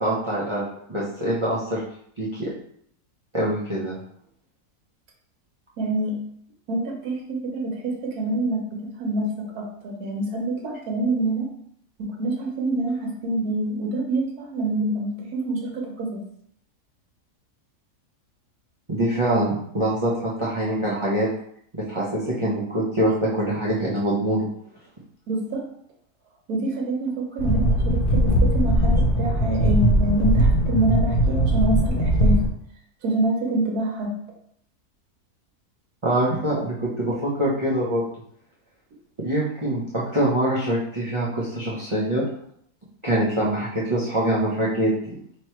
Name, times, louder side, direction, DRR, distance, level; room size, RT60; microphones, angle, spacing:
voice 1, 0.0-1.8 2.2-2.5 3.3-4.0 18.9-21.3 21.7-24.5 36.0-38.0 39.2-39.8 40.1-42.2 43.0-45.1, right 1 dB, 30° right, -8 dB, 0.5 m, -24 dB
voice 2, 5.8-6.2 6.7-11.5 12.0-16.2 25.3-25.7 26.5-32.4 33.0-34.1, right 2 dB, 70° right, 0 dB, 1.4 m, -26 dB
sound 1, 27.4-32.5, equal, 65° left, 0.5 m, -20 dB
3.1 x 2.9 x 4.4 m, 0.68 s
omnidirectional pair, 1.7 m